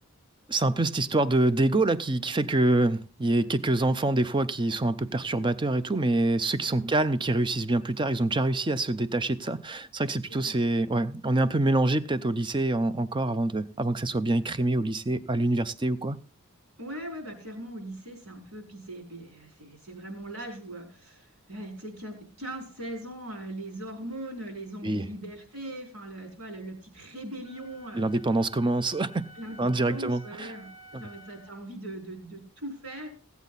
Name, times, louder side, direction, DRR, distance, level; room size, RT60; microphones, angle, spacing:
voice 1, 0.5-16.2 24.8-25.0 27.9-29.2 29.6-30.5, right 2 dB, 20° right, 0.5 m, -26 dB
voice 2, 16.8-28.0 29.4-33.1, right 1 dB, 85° right, 4.6 m, -40 dB
Wind instrument woodwind instrument, 27.4-31.6, right 1 dB, 60° right, 1.7 m, -51 dB
16.5 x 8.2 x 4.0 m
head